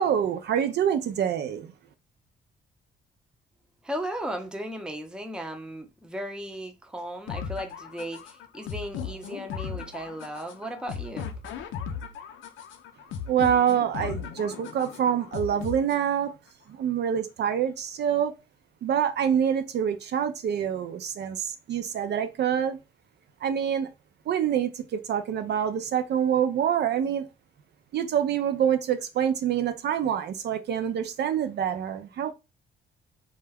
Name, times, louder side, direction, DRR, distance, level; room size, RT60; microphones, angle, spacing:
voice 1, 0.0-1.7 13.3-16.3 16.7-18.3 18.8-22.8 23.4-23.9 24.3-27.2 27.9-32.3, right 9 dB, 60° right, 0.4 m, -26 dB
voice 2, 3.8-11.3, equal, 5° right, 0.5 m, -36 dB
sound 1, 7.3-16.3, left 7 dB, 75° left, 0.5 m, -37 dB
2.2 x 2.1 x 3.4 m
cardioid pair, 90°, 20 cm